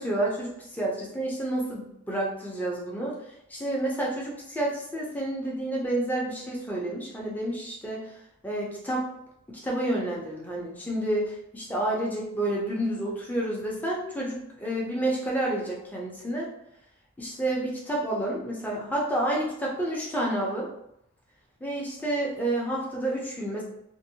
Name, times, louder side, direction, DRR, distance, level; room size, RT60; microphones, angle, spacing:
voice 1, 0.0-3.2 3.5-8.1 8.4-9.1 9.5-16.5 17.2-20.7 21.6-23.6, right 1 dB, 5° left, -4 dB, 0.5 m, -29 dB
2.6 x 2.1 x 2.7 m, 0.79 s
head